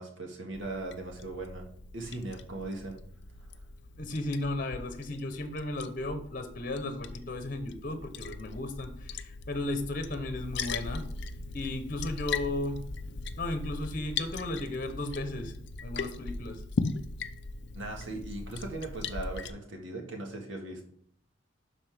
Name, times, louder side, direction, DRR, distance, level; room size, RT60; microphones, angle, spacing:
voice 1, 0.0-1.7 1.9-3.0 17.7-20.8, right 2 dB, 70° right, 1 dB, 1.8 m, -38 dB
Liquid, 0.5-19.5, left 4 dB, 60° left, 0.5 m, -39 dB
voice 2, 4.0-11.0 11.5-12.8 13.4-15.5 15.8-16.6, left 2 dB, 45° left, 8 dB, 0.9 m, -35 dB
12.0 x 4.2 x 3.5 m, 0.65 s
head